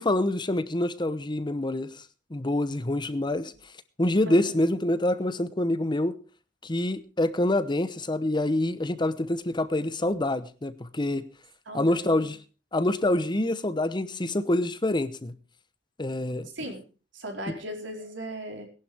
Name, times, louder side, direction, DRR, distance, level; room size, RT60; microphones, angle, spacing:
voice 1, 0.0-2.0 2.3-3.5 4.0-6.1 6.6-11.2 11.7-12.4 12.7-15.3 16.0-16.5, left 1 dB, 25° left, 0.9 m, -26 dB
voice 2, 4.3-4.6 11.7-12.3 16.5-16.8 17.1-18.7, right 1 dB, 85° right, 4.3 m, -38 dB
19.0 x 11.5 x 3.5 m
head